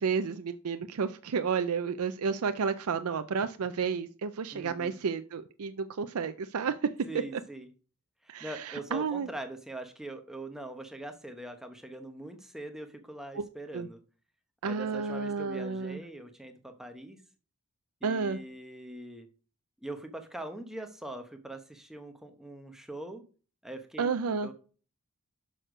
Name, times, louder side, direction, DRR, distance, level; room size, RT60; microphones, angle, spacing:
voice 1, 0.0-6.8 7.3-7.4 8.3-9.3 13.3-13.5 13.7-13.9 14.6-16.0 18.0-18.4 24.0-24.5, right 5 dB, 80° right, 9 dB, 0.5 m, -31 dB
voice 2, 4.5-5.0 7.0-7.7 8.2-14.0 14.6-17.2 18.0-19.3 19.8-23.2 23.6-24.1 24.4-24.5, right 1 dB, ahead, 5 dB, 0.9 m, -42 dB
6.5 x 6.3 x 5.0 m, 0.38 s
head